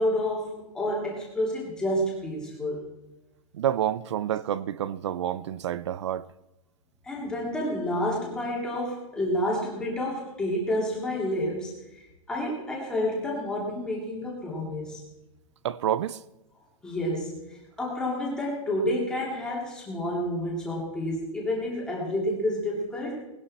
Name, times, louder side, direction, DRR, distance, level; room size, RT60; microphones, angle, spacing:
voice 1, 0.0-2.8 7.0-15.1 16.8-23.2, left 1 dB, 5° left, 2.6 m, -29 dB
voice 2, 3.5-6.3 15.6-16.2, right 11 dB, 50° right, 0.6 m, -28 dB
19.5 x 11.5 x 4.3 m
hypercardioid pair, 175°, 18 cm